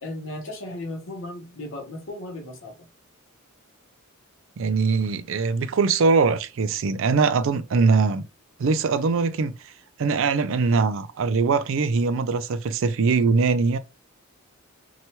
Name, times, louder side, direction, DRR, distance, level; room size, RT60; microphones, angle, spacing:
voice 1, 0.0-2.9, left 1 dB, 60° left, 0.7 m, -36 dB
voice 2, 4.6-8.2 8.6-9.7 10.0-13.8, right 4 dB, 65° right, 0.4 m, -22 dB
2.9 x 2.2 x 2.8 m
head